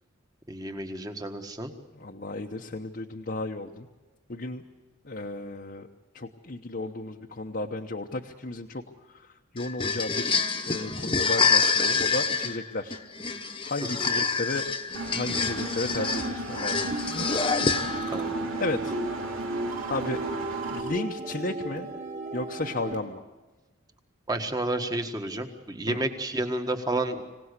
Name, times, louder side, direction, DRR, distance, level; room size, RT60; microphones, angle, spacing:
voice 1, 0.5-1.7 13.9-14.1 18.1-18.5 24.3-27.2, right 2 dB, 20° right, 6 dB, 1.6 m, -31 dB
voice 2, 2.0-3.9 4.3-4.6 5.0-5.9 6.1-8.8 9.1-9.2 9.5-13.0 13.6-14.6 15.1-17.3 17.7-18.1 18.6-18.9 19.9-20.2 20.7-21.9 22.3-23.2 25.9-26.0, left 2 dB, 45° left, 1 dB, 1.0 m, -34 dB
sound 1, 9.6-18.2, left 4 dB, 25° left, 1.2 m, -27 dB
Engine, 14.9-20.8, right 1 dB, 85° right, 3.2 m, -36 dB
sound 2, 15.9-23.0, right 2 dB, 40° right, 2.6 m, -35 dB
25.5 x 18.0 x 8.2 m, 1.2 s
head